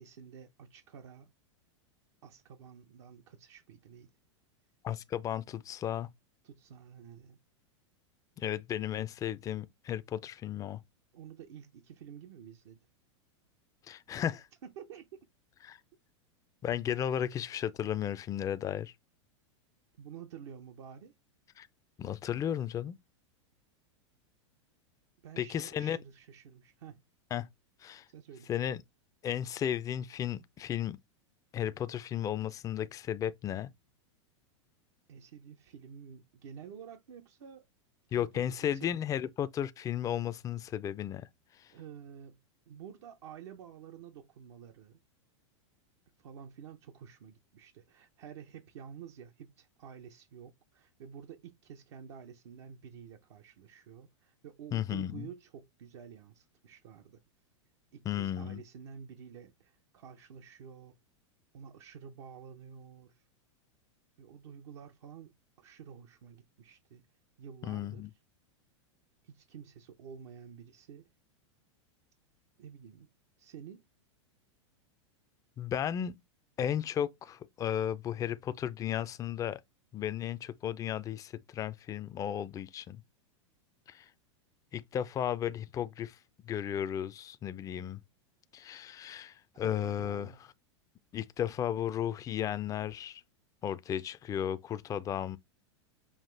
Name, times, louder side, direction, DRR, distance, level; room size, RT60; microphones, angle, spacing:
voice 1, 0.0-1.3 2.2-4.1 6.4-7.4 11.1-12.8 14.6-15.1 20.0-21.1 25.2-27.0 28.1-28.5 35.1-37.7 38.1-39.0 41.7-45.0 46.2-57.2 57.9-61.0 61.5-63.2 64.2-67.0 67.4-68.1 69.2-71.1 72.6-73.1 73.4-73.8 89.6-90.4, right 8 dB, 70° right, 0.7 m, -50 dB
voice 2, 4.8-6.1 8.4-10.8 13.9-14.5 15.6-15.8 16.6-18.9 21.6-21.7 22.0-23.0 25.4-26.0 27.3-27.5 27.8-28.1 28.5-28.8 29.2-31.0 31.5-33.7 38.1-41.3 41.6-41.7 54.7-55.3 58.1-58.6 67.6-68.1 75.6-76.2 76.6-79.6 79.9-83.0 83.9-84.1 84.7-86.2 86.4-88.0 88.5-90.3 91.1-93.2 93.6-95.4, left 10 dB, 20° left, 0.4 m, -34 dB
5.7 x 2.4 x 3.3 m
hypercardioid pair, 110°, 16 cm